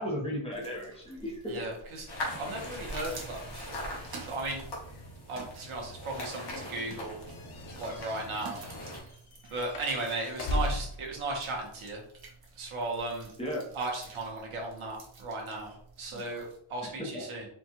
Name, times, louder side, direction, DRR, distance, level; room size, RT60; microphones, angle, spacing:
voice 1, 0.0-1.6 13.4-13.6 17.0-17.2, equal, 10° left, -2 dB, 0.8 m, -35 dB
sound 1, 0.5-16.6, right 3 dB, 45° right, 0.8 m, -49 dB
voice 2, 1.5-2.1 2.4-3.9 4.2-4.6 5.3-7.2 7.8-8.6 9.5-12.0 12.5-13.3 13.7-17.5, right 2 dB, 75° right, 0 dB, 1.2 m, -36 dB
sound 2, 2.1-9.0, left 1 dB, 50° left, 1.1 m, -41 dB
sound 3, 7.3-11.1, left 1 dB, 75° left, 0.7 m, -36 dB
4.3 x 2.3 x 2.9 m, 0.67 s
wide cardioid pair, 165°, 49 cm